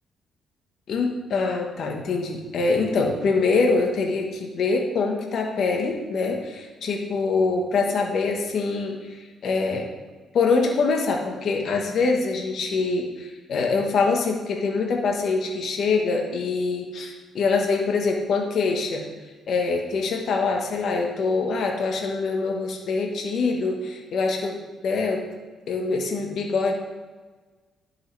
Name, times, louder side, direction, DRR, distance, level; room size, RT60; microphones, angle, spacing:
voice 1, 0.9-9.9 10.3-19.0 19.5-24.5 24.8-25.2 25.7-26.7, left 4 dB, 65° left, 2 dB, 1.2 m, -24 dB
11.0 x 5.6 x 3.4 m, 1.3 s
cardioid pair, 90°, 0 cm